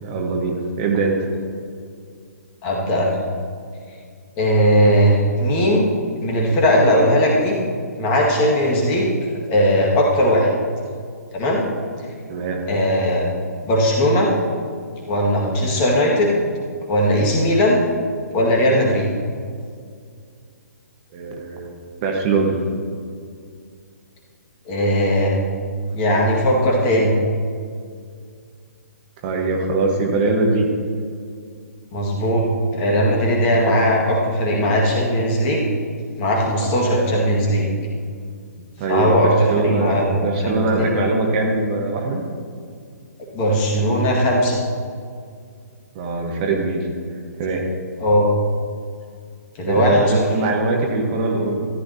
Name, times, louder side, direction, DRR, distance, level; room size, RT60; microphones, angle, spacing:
voice 1, 0.0-1.3 12.3-12.6 21.1-22.5 29.2-30.7 36.5-36.7 38.8-42.2 45.9-46.9 47.4-47.7 49.6-51.7, right 3 dB, 30° right, 1 dB, 1.3 m, -22 dB
voice 2, 2.6-3.2 4.4-5.9 6.2-7.6 8.0-9.1 9.5-10.5 11.3-11.6 12.7-13.2 13.6-14.3 15.1-16.4 16.9-17.8 18.3-19.1 24.7-25.4 25.9-27.2 31.9-32.5 32.7-35.6 36.2-37.7 38.9-40.9 43.3-44.6 48.0-48.3 49.6-50.2, equal, 25° left, -2 dB, 1.9 m, -18 dB
14.0 x 11.5 x 2.9 m, 2.1 s
figure-of-eight pair, 125°, 9 cm